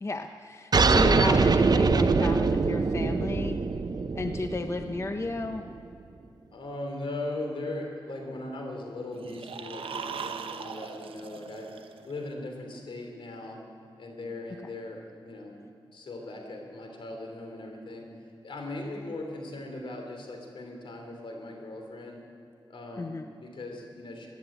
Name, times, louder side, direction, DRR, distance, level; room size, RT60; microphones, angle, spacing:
voice 1, 0.0-3.6 4.1-5.6 23.0-23.2, left 3 dB, 30° left, 7 dB, 0.7 m, -33 dB
sound 1, 0.7-5.8, right 4 dB, 45° right, 0.7 m, -23 dB
voice 2, 6.5-11.7 12.0-13.6 14.0-15.6 15.9-18.1 18.4-22.2 22.7-24.3, left 2 dB, 70° left, 2 dB, 3.1 m, -39 dB
sound 2, 9.1-12.3, right 6 dB, 80° right, 0.8 m, -39 dB
16.0 x 10.5 x 8.1 m, 2.5 s
cardioid pair, 65°, 9 cm